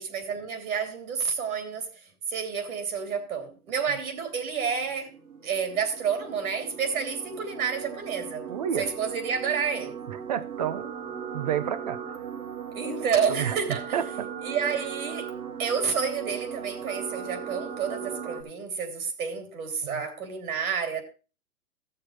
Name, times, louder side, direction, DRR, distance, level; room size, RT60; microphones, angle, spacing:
voice 1, 0.0-5.1 5.4-8.5 8.8-9.9 12.7-14.0 14.4-15.3 15.6-21.0, right 6 dB, 70° right, 3.2 m, -30 dB
sound 1, 3.4-18.4, right 7 dB, 85° right, 4.3 m, -38 dB
voice 2, 8.5-8.9 10.1-10.9 11.3-12.0 13.3-13.6 13.9-14.3 19.8-20.0, right 9 dB, 30° right, 0.6 m, -30 dB
14.5 x 6.7 x 4.5 m
hypercardioid pair, 170°, 44 cm